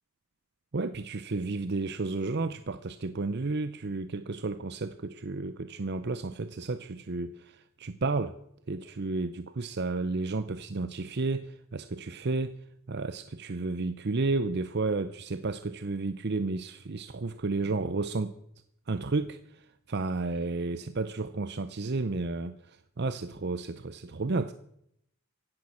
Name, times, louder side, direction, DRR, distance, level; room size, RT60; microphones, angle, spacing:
voice 1, 0.7-8.4 8.7-12.6 12.9-18.3 18.9-24.5, right 3 dB, 50° right, 12 dB, 0.7 m, -32 dB
15.5 x 11.0 x 6.3 m, 0.71 s
head